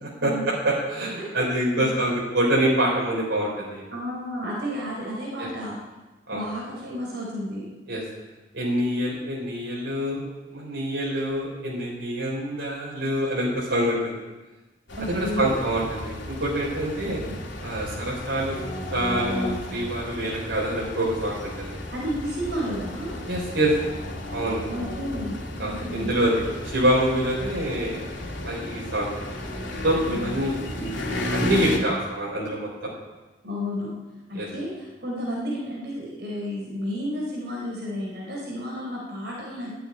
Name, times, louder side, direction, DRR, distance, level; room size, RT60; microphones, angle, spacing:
voice 1, 0.2-3.8 5.4-5.5 6.3-6.4 7.9-8.0 8.5-10.3 10.5-14.1 15.0-17.2 17.6-18.6 18.9-21.8 23.3-23.7 24.3-24.6 25.6-28.0 28.4-29.2 29.8-32.9 34.3-34.5, right 1 dB, 80° right, -5 dB, 4.1 m, -26 dB
voice 2, 3.9-5.8 6.3-7.7 15.0-15.6 17.2-17.3 21.9-23.2 24.7-26.1 30.1-30.3 33.4-33.9 34.3-39.7, equal, 60° right, -4 dB, 4.6 m, -32 dB
sound 1, 14.9-31.8, left 1 dB, 80° left, 2.6 m, -33 dB
11.5 x 9.2 x 9.8 m, 1.1 s
head